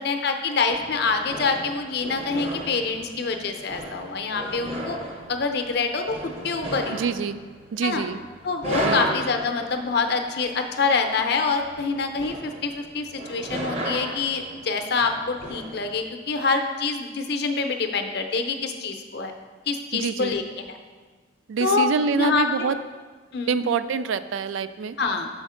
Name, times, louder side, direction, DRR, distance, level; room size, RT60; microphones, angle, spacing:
voice 1, 0.0-5.0 5.3-7.0 7.8-8.0 8.4-19.3 19.7-20.8 21.6-21.9 22.2-22.7 23.3-23.6 25.0-25.3, left 4 dB, 55° left, 5 dB, 0.6 m, -26 dB
sound 1, 0.7-16.0, right 1 dB, 35° right, 0.7 m, -35 dB
voice 2, 6.9-7.4 7.7-8.2 8.8-9.0 19.9-20.4 21.5-22.8 23.5-25.0, right 5 dB, 80° right, 13 dB, 0.3 m, -26 dB
6.4 x 5.0 x 5.0 m, 1.4 s
head